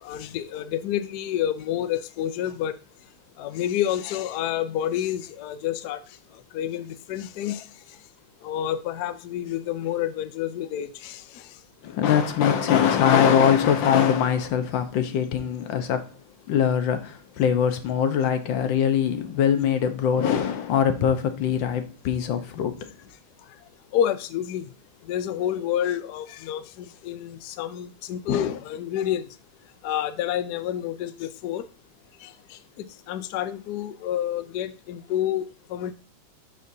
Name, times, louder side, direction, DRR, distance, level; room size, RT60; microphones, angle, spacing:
voice 1, 0.0-2.7 3.4-6.0 6.5-7.7 8.4-11.4 23.9-24.7 25.1-29.2 29.8-31.6 32.2-35.9, left 10 dB, 85° left, 0.8 m, -29 dB
voice 2, 11.8-16.1 16.5-22.8, left 8 dB, 65° left, 1.5 m, -22 dB
12.0 x 4.3 x 2.7 m
omnidirectional pair, 2.4 m